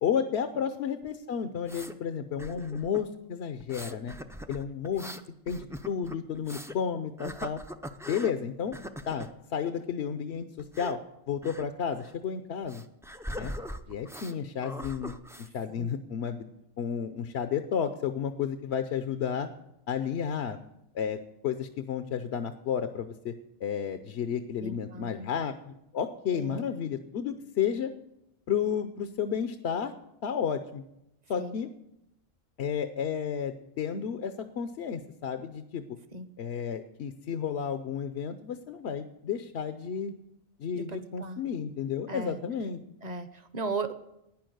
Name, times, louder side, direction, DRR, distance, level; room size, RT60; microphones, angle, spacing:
voice 1, 0.0-4.1 4.5-5.1 5.5-7.6 8.1-11.0 11.3-12.8 13.4-13.5 13.9-15.1 15.5-16.5 16.8-19.5 19.9-20.6 20.9-21.2 21.4-23.3 23.6-27.9 28.5-29.9 30.2-30.8 31.3-31.7 32.6-35.8 36.4-40.1 40.6-42.8, left 7 dB, 70° left, 9 dB, 0.9 m, -32 dB
sound 1, 1.0-2.0 2.4-3.1 3.6-6.8 7.2-8.4 8.7-9.3 10.6-11.0 11.4-11.7 12.0-12.1 12.7-14.4 14.6-15.5, equal, 5° right, 0.3 m, -41 dB
voice 2, 24.6-25.3 26.3-26.7 31.4-31.6 36.1-36.3 40.7-41.4 42.1-42.4 43.0-43.9, right 3 dB, 40° right, 12 dB, 0.9 m, -37 dB
12.0 x 9.5 x 7.7 m, 0.85 s
omnidirectional pair, 1.2 m